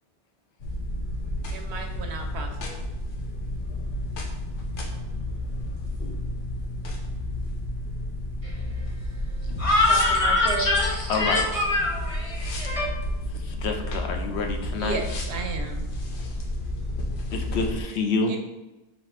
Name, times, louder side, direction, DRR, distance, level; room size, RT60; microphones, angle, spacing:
sound 1, 0.6-17.8, left 1 dB, 60° left, 0.8 m, -31 dB
voice 1, 1.5-2.7 9.9-10.8 14.8-15.9 18.3-18.4, right 3 dB, 80° right, 0.9 m, -33 dB
voice 2, 9.6-12.9, left 2 dB, 35° left, 1.0 m, -24 dB
voice 3, 11.1-11.5 13.4-15.0 17.3-18.3, left 4 dB, 85° left, 0.9 m, -27 dB
4.1 x 2.8 x 4.3 m
omnidirectional pair, 1.1 m